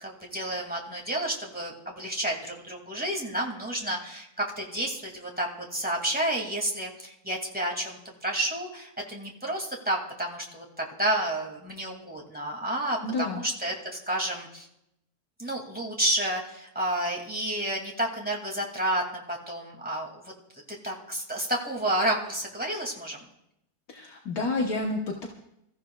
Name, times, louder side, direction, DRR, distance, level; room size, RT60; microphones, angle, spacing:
voice 1, 0.0-14.7 15.4-23.2, right 1 dB, 5° right, -1 dB, 2.3 m, -30 dB
voice 2, 13.0-13.4 23.9-25.3, left 2 dB, 65° left, 0 dB, 1.7 m, -29 dB
26.0 x 14.0 x 2.4 m, 0.79 s
omnidirectional pair, 1.7 m